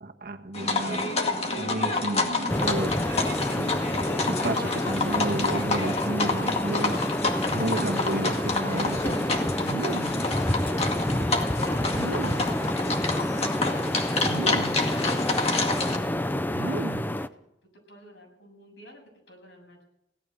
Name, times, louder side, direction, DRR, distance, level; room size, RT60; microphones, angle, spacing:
voice 1, 0.0-1.1 1.6-3.0 3.6-7.1 7.4-9.4, right 1 dB, 55° right, 5 dB, 1.4 m, -32 dB
sound 1, 0.5-16.0, left 3 dB, 35° left, 2.1 m, -29 dB
sound 2, 2.5-17.3, left 1 dB, 10° left, 0.5 m, -28 dB
voice 2, 3.5-4.9 10.3-15.4 15.8-17.2 17.9-19.0 19.3-19.8, left 1 dB, 75° left, 0 dB, 7.5 m, -46 dB
sound 3, 5.2-5.9 7.5-8.2 9.6-10.3 11.9-12.6 14.2-14.9 16.5-17.2, right 4 dB, 75° right, 0.5 m, -35 dB
17.5 x 12.5 x 6.6 m, 0.86 s
head